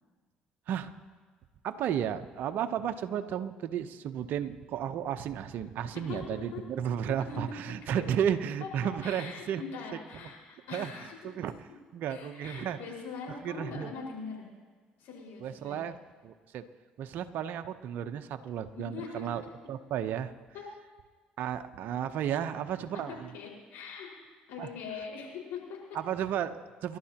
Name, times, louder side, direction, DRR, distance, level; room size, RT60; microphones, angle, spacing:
voice 1, 1.6-9.6 10.7-10.9 11.2-11.5 11.9-12.8 13.4-13.9 15.4-16.0 16.2-16.6 17.0-19.4 19.7-20.3 21.4-23.3 24.6-24.7 25.9-27.0, right 9 dB, 65° right, 8 dB, 0.9 m, -33 dB
voice 2, 6.1-6.6 7.1-8.0 8.6-8.7 9.0-11.3 12.1-14.5 15.0-15.8 18.7-19.3 20.5-20.7 23.1-24.2 24.5-26.0, left 5 dB, 70° left, -2 dB, 5.1 m, -42 dB
28.5 x 12.0 x 3.0 m, 1.5 s
hypercardioid pair, 65°, 3 cm